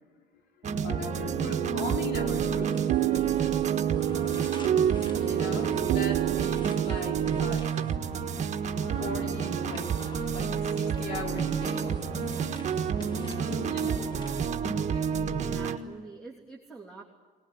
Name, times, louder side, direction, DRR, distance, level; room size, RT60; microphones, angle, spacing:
sound 1, 0.6-15.8, right 7 dB, 45° right, 1.5 m, -29 dB
voice 1, 0.8-2.7 4.3-7.7 9.0-9.9 10.3-12.2 13.3-14.0 14.9-15.1, left 4 dB, 75° left, 1 dB, 4.3 m, -39 dB
sound 2, 0.9-7.5, right 15 dB, 80° right, 0.7 m, -30 dB
sound 3, 2.3-14.9, left 1 dB, 30° left, 2.5 m, -46 dB
voice 2, 15.2-17.0, right 4 dB, 5° left, -1 dB, 3.2 m, -46 dB
22.0 x 20.0 x 9.5 m, 1.5 s
cardioid pair, 110°, 17 cm